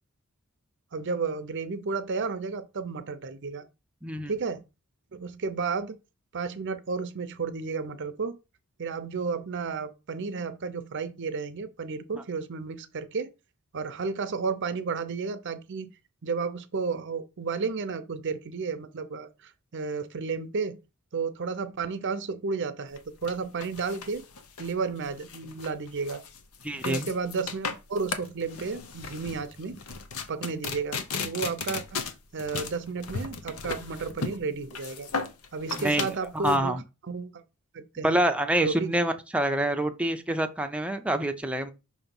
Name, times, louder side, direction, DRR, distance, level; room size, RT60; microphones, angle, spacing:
voice 1, 0.9-3.7 4.3-4.6 5.1-6.0 6.3-8.4 8.8-13.3 13.7-15.9 16.2-20.8 21.1-24.2 24.6-26.2 26.8-29.8 30.3-32.0 32.3-35.1 35.5-37.4 37.7-38.2 38.6-38.9, right 4 dB, 55° right, 0.6 m, -32 dB
voice 2, 4.0-4.3 12.1-12.2 26.6-27.1 35.8-36.8 38.0-41.7, right 1 dB, 5° right, 0.6 m, -27 dB
sound 1, 22.9-36.6, left 5 dB, 75° left, 0.7 m, -36 dB
6.0 x 2.9 x 5.3 m
head